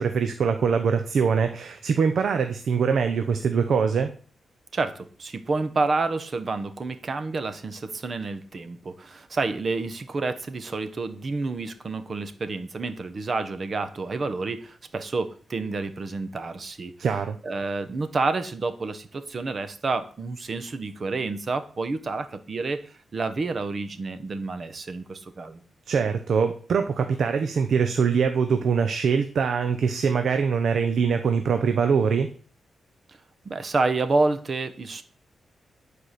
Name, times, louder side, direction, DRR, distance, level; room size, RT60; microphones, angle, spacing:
voice 1, 0.0-4.1 17.0-17.4 25.9-32.3, right 6 dB, 70° right, 7 dB, 0.8 m, -23 dB
voice 2, 4.7-17.1 17.4-25.6 33.1-33.2 33.4-35.0, right 3 dB, 45° right, 10 dB, 1.1 m, -29 dB
9.8 x 4.8 x 6.7 m, 0.43 s
wide cardioid pair, 115°, 0 cm